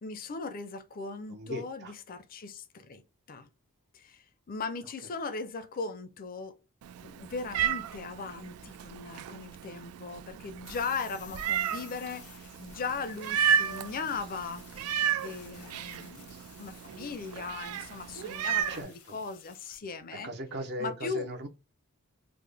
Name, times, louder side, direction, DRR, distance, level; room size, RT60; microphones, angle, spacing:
voice 1, 0.0-3.0 3.3-3.5 3.9-6.5 7.0-20.3 20.8-21.3, left 4 dB, 40° left, 0.5 m, -38 dB
voice 2, 1.3-1.9 18.7-19.2 20.2-21.5, equal, 50° right, 0.7 m, -38 dB
Meow, 6.8-18.8, right 8 dB, 80° right, 0.3 m, -33 dB
sound 1, 10.6-19.8, left 7 dB, 85° left, 0.8 m, -54 dB
3.6 x 2.1 x 3.4 m
head